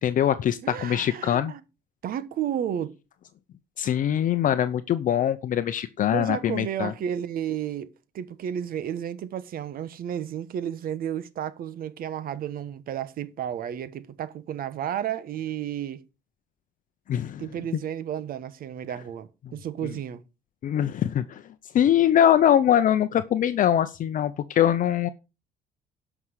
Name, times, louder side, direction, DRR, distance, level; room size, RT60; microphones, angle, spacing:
voice 1, 0.0-1.5 3.8-6.9 17.1-17.4 20.6-21.4 21.7-25.1, left 10 dB, 50° left, 0.7 m, -22 dB
voice 2, 0.6-1.6 2.0-2.9 6.1-16.0 17.4-20.2, right 9 dB, 60° right, 1.2 m, -32 dB
11.0 x 6.1 x 6.5 m
cardioid pair, 110°, 17 cm